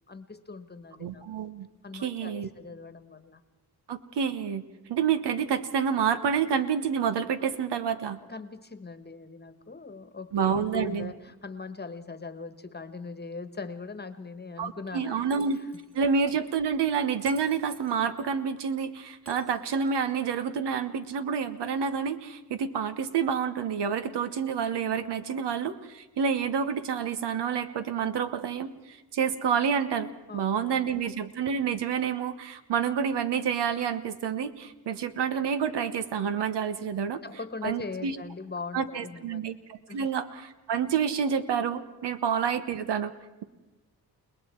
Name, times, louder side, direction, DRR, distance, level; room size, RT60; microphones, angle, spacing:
voice 1, 0.1-1.3 1.8-3.4 8.3-15.7 30.3-31.0 36.8-39.4 39.9-40.1, left 4 dB, 25° left, 11 dB, 1.3 m, -41 dB
voice 2, 1.0-1.7 2.0-2.5 3.9-4.6 4.9-8.2 10.3-11.1 14.6-15.6 15.9-37.2 37.6-38.1 38.7-43.1, right 7 dB, 90° right, 11 dB, 1.2 m, -28 dB
Shatter, 15.3-16.3 17.3-18.2 19.3-20.2, right 1 dB, 35° right, 2.7 m, -52 dB
29.5 x 19.5 x 4.6 m, 1.1 s
cardioid pair, 95°, 40 cm